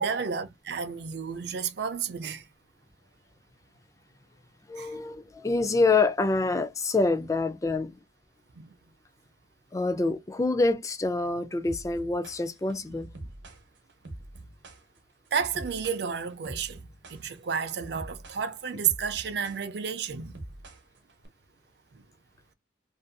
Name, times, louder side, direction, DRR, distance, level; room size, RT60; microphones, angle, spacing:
voice 1, 0.0-2.5 4.8-5.0 8.6-8.7 12.9-13.0 15.3-16.8 17.1-20.3 21.9-22.0, right 6 dB, 65° right, 0.4 m, -31 dB
voice 2, 4.7-8.0 9.7-13.1, left 3 dB, 20° left, 0.3 m, -26 dB
sound 1, 11.7-21.3, right 1 dB, 90° right, 0.8 m, -45 dB
2.5 x 2.4 x 2.2 m
head